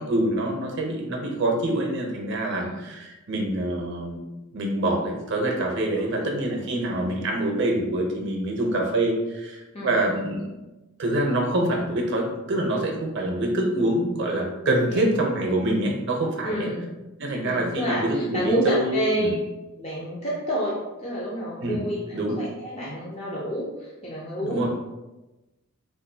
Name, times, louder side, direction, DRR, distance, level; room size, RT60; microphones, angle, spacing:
voice 1, 0.0-4.2 4.5-10.5 11.0-16.7 17.2-19.3 21.6-21.8 22.1-22.4 24.4-24.7, right 1 dB, 55° right, 1 dB, 0.6 m, -25 dB
voice 2, 9.7-10.3 14.9-15.3 16.4-16.9 17.4-19.4 19.8-24.6, equal, 30° left, -6 dB, 0.5 m, -29 dB
3.6 x 2.5 x 2.7 m, 1.0 s
head